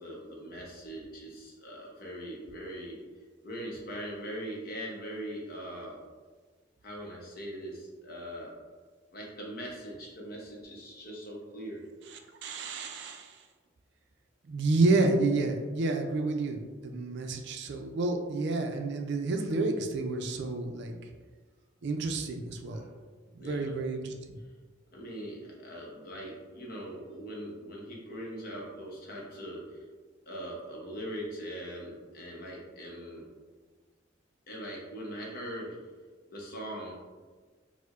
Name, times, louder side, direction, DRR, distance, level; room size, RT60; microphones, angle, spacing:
voice 1, 0.0-3.0 3.4-6.0 6.8-8.5 9.1-11.8 22.7-22.9 23.4-23.7 24.9-29.9 30.3-33.2 34.5-35.8 36.3-36.9, equal, 50° left, -2 dB, 0.8 m, -41 dB
voice 2, 12.1-13.4 14.5-21.0 21.8-22.8 23.3-24.1, right 3 dB, 65° right, 4 dB, 0.4 m, -29 dB
4.4 x 2.1 x 2.4 m, 1.4 s
head